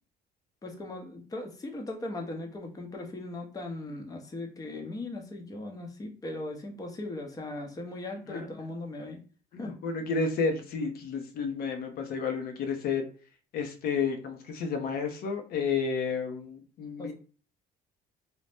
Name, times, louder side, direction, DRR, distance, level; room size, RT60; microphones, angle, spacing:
voice 1, 0.6-9.2 9.6-9.7 17.0-17.1, left 2 dB, 20° left, 2 dB, 0.6 m, -38 dB
voice 2, 9.5-13.0 13.5-17.1, left 5 dB, 65° left, 5 dB, 0.6 m, -31 dB
2.6 x 2.0 x 3.3 m, 0.38 s
cardioid pair, 110°, 17 cm